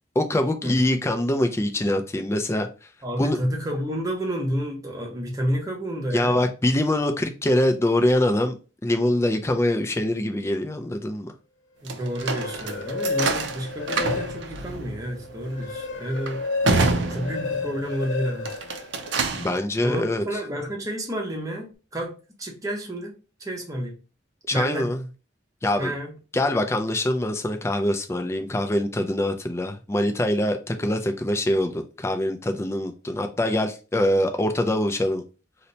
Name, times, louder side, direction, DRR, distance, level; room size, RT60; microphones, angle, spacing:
voice 1, 0.2-2.7 3.2-3.4 6.1-8.5 8.8-11.3 19.3-20.2 24.5-25.0 25.6-25.9 26.3-35.2, left 1 dB, 15° left, 0.3 m, -24 dB
voice 2, 3.0-6.4 11.8-16.5 17.1-18.6 19.8-23.1 23.4-24.0 24.5-24.9 25.8-26.1, equal, 20° right, 0.7 m, -30 dB
sound 1, 11.9-17.9 18.4-19.6, right 3 dB, 65° right, 0.5 m, -28 dB
sound 2, 12.0-14.7 15.1-19.4, left 4 dB, 75° left, 0.5 m, -32 dB
2.8 x 2.1 x 3.9 m
head